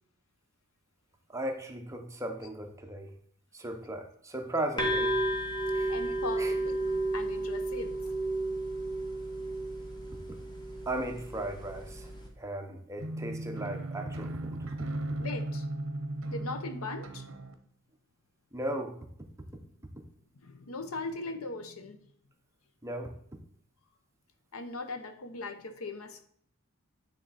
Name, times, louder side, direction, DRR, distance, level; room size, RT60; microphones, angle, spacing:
voice 1, 1.3-3.1 3.5-5.2 5.7-5.9 6.4-6.5 10.9-14.7 18.5-19.0 22.8-23.1, right 1 dB, 15° right, 4 dB, 0.7 m, -37 dB
sound 1, 4.8-12.3, right 2 dB, 20° left, 1.2 m, -32 dB
voice 2, 5.9-8.0 15.2-15.6 16.3-17.2 20.4-22.0 24.5-26.2, left 3 dB, 85° left, 8 dB, 0.8 m, -39 dB
sound 2, 13.0-17.5, right 1 dB, 65° right, 0.7 m, -36 dB
9.2 x 3.3 x 4.1 m, 0.64 s
head